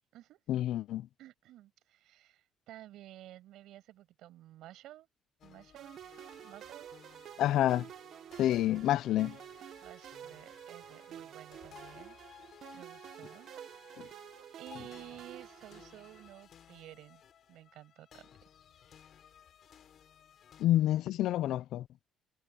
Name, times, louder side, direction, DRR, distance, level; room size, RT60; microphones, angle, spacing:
voice 1, 0.5-1.1 7.4-7.9 8.4-9.4 14.0-14.1 20.6-21.9, left 13 dB, 70° left, 0.4 m, -28 dB
voice 2, 1.2-5.1 5.4-6.0 6.4-6.9 9.8-12.2 12.7-13.5 13.8-14.2 14.6-17.2 17.5-18.4, right 14 dB, 75° right, 6.6 m, -53 dB
sound 1, 5.4-20.7, left 9 dB, 45° left, 6.1 m, -58 dB
sound 2, 5.8-16.4, right 10 dB, 50° right, 1.1 m, -50 dB
cardioid pair, 170°, 0 cm